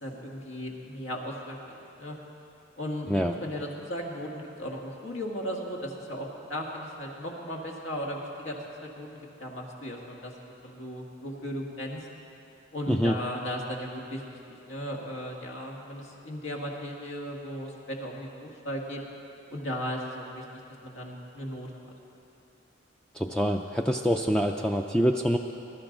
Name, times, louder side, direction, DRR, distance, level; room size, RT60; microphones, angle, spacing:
voice 1, 0.0-2.2 2.8-3.1 3.4-10.3 10.6-12.0 12.7-19.0 19.5-20.4 20.8-21.9, equal, 80° left, -1 dB, 1.8 m, -36 dB
voice 2, 23.2-25.4, equal, 5° left, 2 dB, 0.3 m, -25 dB
20.5 x 12.5 x 3.9 m, 2.8 s
head